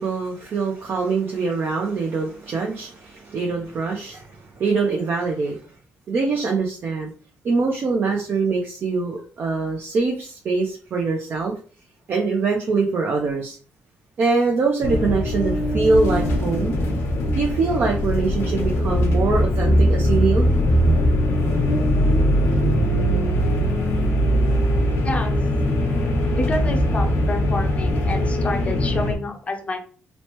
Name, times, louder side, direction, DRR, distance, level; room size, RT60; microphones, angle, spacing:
voice 1, 0.0-5.6 6.1-7.1 7.4-11.5 12.1-13.6 14.2-16.7 17.4-20.5, right 4 dB, 55° right, 0.5 m, -23 dB
sound 1, 14.8-29.2, equal, 90° left, 0.8 m, -20 dB
voice 2, 25.0-25.4 26.4-29.8, left 2 dB, 30° left, 0.5 m, -28 dB
3.0 x 2.1 x 3.0 m
cardioid pair, 115°, 4 cm